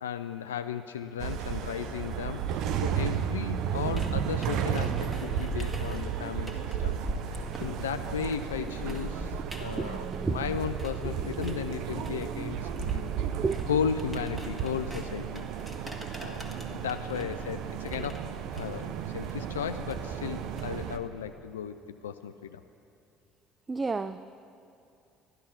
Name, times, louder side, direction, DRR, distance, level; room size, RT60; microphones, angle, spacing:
voice 1, 0.0-7.0 7.3-13.1 13.7-15.4 16.1-21.8 22.0-22.6, left 7 dB, 85° left, 9 dB, 0.3 m, -35 dB
sound 1, 1.2-21.0, right 8 dB, 60° right, 0.6 m, -33 dB
sound 2, 3.9-11.1 11.4-21.0, equal, 10° right, 2.1 m, -43 dB
voice 2, 9.6-10.6 11.0-11.4 11.9-12.0 13.2-13.6 23.7-24.2, right 4 dB, 25° right, 12 dB, 0.4 m, -33 dB
13.5 x 11.5 x 5.8 m, 2.6 s
hypercardioid pair, 60°, 0 cm